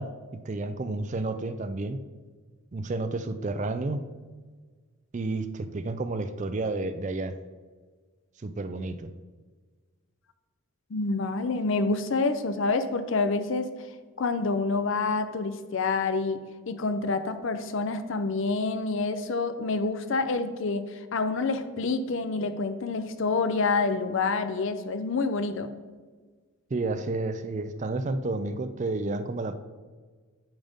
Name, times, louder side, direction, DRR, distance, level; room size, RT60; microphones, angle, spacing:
voice 1, 0.0-2.0 2.7-4.0 5.1-7.4 8.4-9.1 26.7-29.5, right 2 dB, 35° right, 10 dB, 0.4 m, -31 dB
voice 2, 10.9-13.7 14.2-25.7, left 3 dB, 60° left, 10 dB, 0.5 m, -27 dB
8.9 x 5.2 x 3.5 m, 1.4 s
head